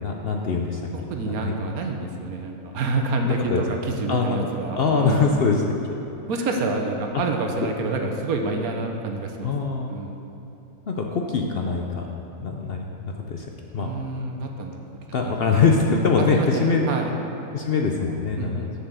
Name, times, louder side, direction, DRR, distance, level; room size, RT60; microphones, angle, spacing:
voice 1, 0.0-0.8 1.3-1.5 3.2-3.6 4.1-4.4 4.8-5.7 9.4-9.9 10.9-12.0 12.4-13.5 13.7-13.9 15.1-16.9 17.5-18.7, left 4 dB, 55° left, 1 dB, 0.7 m, -23 dB
voice 2, 0.9-5.4 6.3-9.5 9.9-10.2 13.7-14.8 15.2-15.6 16.2-17.1 18.4-18.7, right 3 dB, 80° right, 3 dB, 1.3 m, -28 dB
7.2 x 7.1 x 6.7 m, 3.0 s
omnidirectional pair, 1.5 m